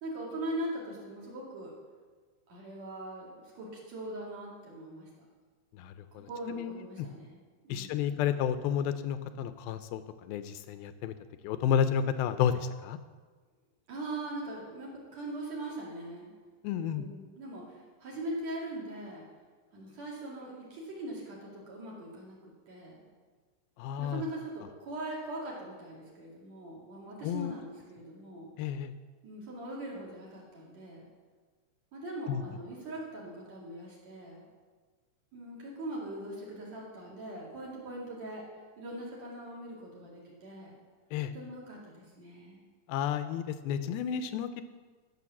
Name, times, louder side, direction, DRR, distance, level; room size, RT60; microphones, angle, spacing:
voice 1, 0.0-1.7 2.5-5.1 6.1-8.2 13.9-16.3 16.8-19.3 19.7-23.0 24.0-28.5 29.2-31.0 31.9-34.4 35.3-38.5 38.8-40.8 41.3-42.6, right 1 dB, 45° right, -4 dB, 3.4 m, -41 dB
voice 2, 5.8-7.1 7.7-10.0 10.3-11.1 11.4-13.0 16.6-17.1 23.8-24.2 27.2-27.5 28.6-28.9 32.3-32.4 41.1-41.3 42.9-44.6, left 8 dB, 80° left, 11 dB, 2.2 m, -31 dB
13.0 x 6.4 x 7.2 m, 1.4 s
omnidirectional pair, 4.6 m